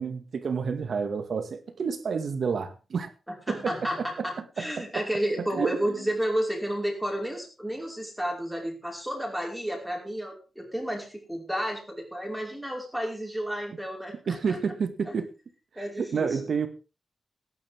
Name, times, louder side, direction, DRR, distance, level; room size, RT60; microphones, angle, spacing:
voice 1, 0.0-3.1 3.5-5.1 5.5-6.1 14.3-15.3 16.0-16.7, right 5 dB, 60° right, 2.0 m, -30 dB
voice 2, 3.5-14.6 15.1-15.2 15.7-16.4, equal, ahead, 5.2 m, -31 dB
18.0 x 10.5 x 3.7 m
wide cardioid pair, 155°, 0 cm